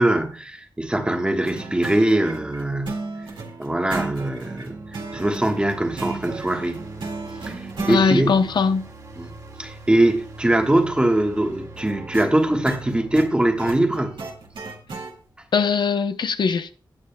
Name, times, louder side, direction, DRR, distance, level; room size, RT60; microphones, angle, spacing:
voice 1, 0.0-3.1 3.6-4.8 5.1-6.8 7.4-7.6 7.9-8.5 9.2-9.3 9.6-14.2, right 1 dB, 10° right, 1.2 m, -22 dB
sound 1, 1.4-8.0 11.8-15.1, right 3 dB, 85° right, 2.0 m, -35 dB
sound 2, 4.3-15.4, right 2 dB, 50° right, 2.2 m, -43 dB
voice 2, 7.9-8.9 15.5-16.7, left 5 dB, 65° left, 0.7 m, -20 dB
17.0 x 8.4 x 2.2 m
wide cardioid pair, 125°, 8 cm